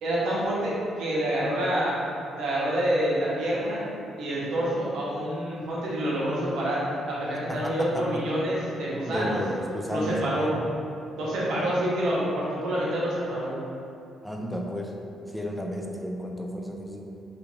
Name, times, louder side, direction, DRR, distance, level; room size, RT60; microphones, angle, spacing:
voice 1, 0.0-2.0 2.3-3.8 4.2-9.4 9.9-10.6 11.2-13.5, right 1 dB, 80° right, -7 dB, 0.7 m, -27 dB
voice 2, 7.5-8.3 9.1-10.6 14.2-17.0, equal, 5° left, 0 dB, 0.3 m, -33 dB
2.4 x 2.4 x 3.0 m, 2.6 s
cardioid pair, 90°, 0 cm